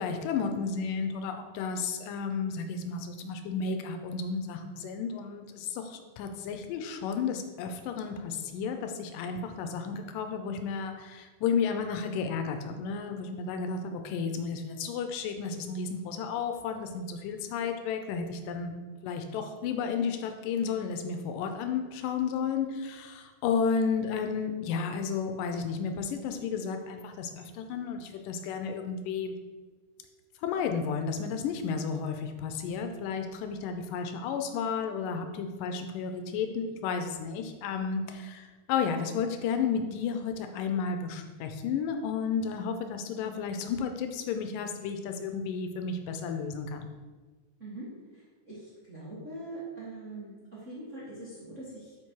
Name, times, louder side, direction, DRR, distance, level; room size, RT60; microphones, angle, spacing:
voice 1, 0.0-29.4 30.4-46.9, left 6 dB, 80° left, 6 dB, 2.2 m, -32 dB
voice 2, 48.5-52.0, right 2 dB, 40° right, -9 dB, 1.0 m, -42 dB
6.0 x 5.1 x 4.5 m, 1.4 s
omnidirectional pair, 3.9 m